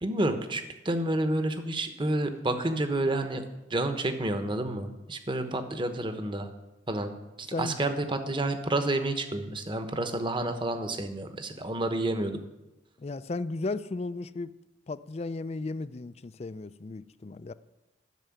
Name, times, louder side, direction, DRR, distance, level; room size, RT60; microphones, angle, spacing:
voice 1, 0.0-3.4 3.7-6.5 6.9-7.1 7.4-12.4, right 1 dB, 25° right, 1.1 m, -29 dB
voice 2, 7.5-7.8 13.0-14.5 14.9-17.5, left 3 dB, 35° left, 0.4 m, -35 dB
12.5 x 6.8 x 9.4 m
head